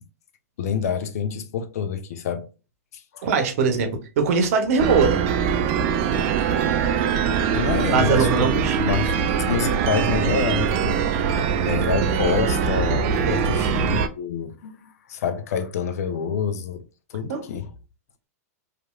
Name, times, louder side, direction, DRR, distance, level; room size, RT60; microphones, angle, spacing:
voice 1, 0.6-2.5 2.9-3.3 6.8-8.5 8.8-9.2 9.5-11.1 11.6-17.7, left 6 dB, 75° left, 0.6 m, -27 dB
voice 2, 3.2-3.9 4.2-5.2 7.9-8.8 13.2-13.6 17.3-17.4, right 5 dB, 65° right, 0.8 m, -21 dB
sound 1, 4.8-14.1, right 7 dB, 50° right, 0.4 m, -22 dB
3.0 x 2.5 x 2.3 m
hypercardioid pair, 125°, 8 cm